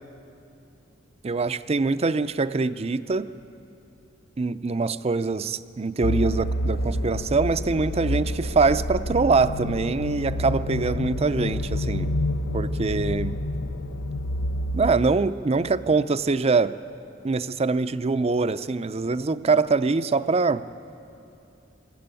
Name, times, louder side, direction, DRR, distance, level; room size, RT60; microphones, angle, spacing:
voice 1, 1.2-3.3 4.4-12.1 12.5-13.4 14.7-16.7 17.2-20.6, right 4 dB, 35° right, 12 dB, 0.5 m, -24 dB
sound 1, 6.0-15.0, left 1 dB, 80° left, 0.7 m, -28 dB
25.0 x 13.0 x 9.1 m, 2.7 s
head